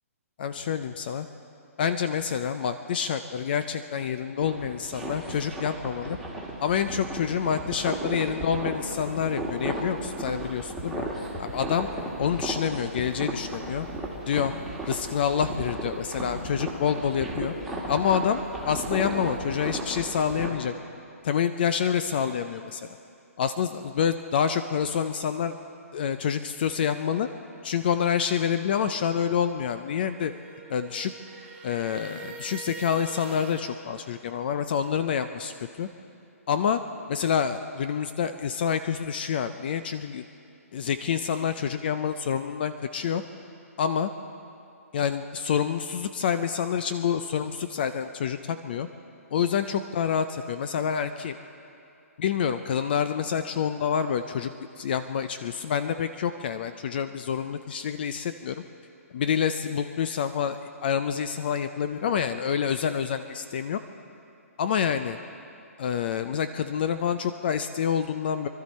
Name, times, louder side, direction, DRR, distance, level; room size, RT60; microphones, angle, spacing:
voice 1, 0.4-1.3 1.8-6.2 6.6-11.1 11.4-11.9 12.2-13.9 14.3-14.5 14.9-17.5 17.9-18.4 18.7-20.7 21.2-22.9 23.4-25.5 25.9-27.3 27.6-30.3 30.7-31.1 31.6-35.5 35.8-35.9 36.5-36.8 37.1-40.2 40.7-43.2 43.8-44.1 44.9-48.9 49.3-51.4 52.2-54.5 54.8-58.6 59.1-63.8 64.6-65.2 65.8-68.5, left 8 dB, 40° left, 10 dB, 0.4 m, -27 dB
sound 1, 4.4-20.5, right 1 dB, ahead, 1.6 m, -35 dB
sound 2, 30.0-33.6, right 4 dB, 15° right, 1.5 m, -43 dB
24.5 x 12.5 x 4.2 m, 2.6 s
hypercardioid pair, 160°, 8 cm